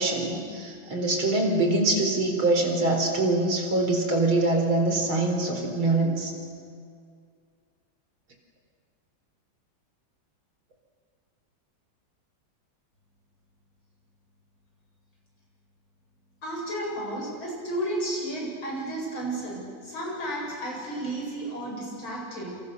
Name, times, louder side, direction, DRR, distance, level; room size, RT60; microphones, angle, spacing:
voice 1, 0.0-6.3, right 2 dB, 90° right, 3 dB, 5.0 m, -24 dB
voice 2, 16.4-22.6, right 1 dB, 85° left, -2 dB, 8.8 m, -32 dB
28.5 x 27.5 x 6.9 m, 2.2 s
omnidirectional pair, 2.2 m